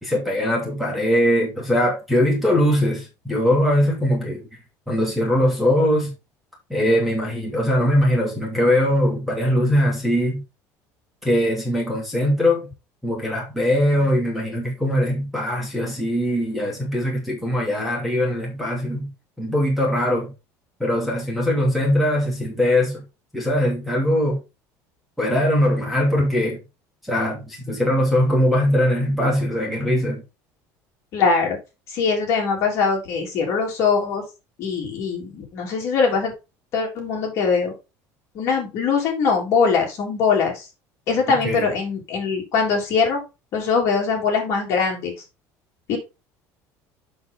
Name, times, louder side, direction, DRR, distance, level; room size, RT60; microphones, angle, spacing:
voice 1, 0.0-4.4 4.9-6.1 6.7-10.4 11.2-12.7 13.0-19.1 19.4-20.3 20.8-23.0 23.3-24.4 25.2-26.6 27.0-30.2 41.3-41.7, left 1 dB, ahead, 2.7 m, -21 dB
voice 2, 31.1-31.6 31.9-34.2 34.6-36.3 36.7-37.7 38.4-40.6 41.1-43.2 43.5-45.1 45.9-46.0, left 5 dB, 40° left, 3.6 m, -22 dB
7.8 x 7.0 x 3.9 m
cardioid pair, 180°, 7 cm